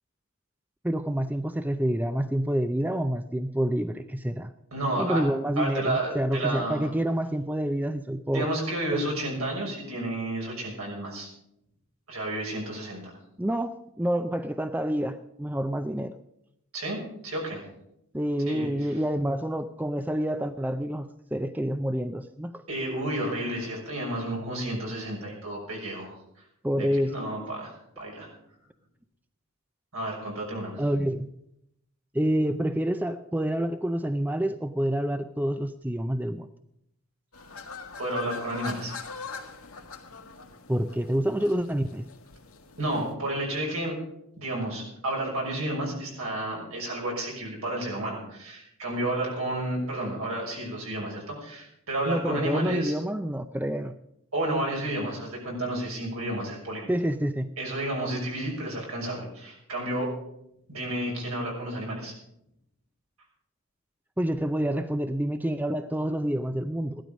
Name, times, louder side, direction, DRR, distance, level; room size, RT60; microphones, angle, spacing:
voice 1, 0.8-4.5 5.0-8.5 8.9-9.0 13.4-16.2 18.1-22.6 26.6-27.1 30.8-31.3 32.1-36.5 40.7-42.1 52.1-53.9 56.9-57.5 64.2-67.0, right 1 dB, 10° right, 9 dB, 0.4 m, -28 dB
voice 2, 4.7-5.3 5.6-6.9 8.3-11.3 12.1-13.0 16.7-17.6 18.5-18.7 22.7-26.2 26.8-28.3 29.9-30.8 38.0-38.9 42.8-43.9 44.4-52.9 54.3-56.9 57.6-60.1 60.7-62.1, right 1 dB, 75° right, -1 dB, 6.2 m, -31 dB
sound 1, 37.3-43.1, left 4 dB, 75° left, 1.8 m, -42 dB
16.0 x 12.5 x 5.3 m, 0.78 s
head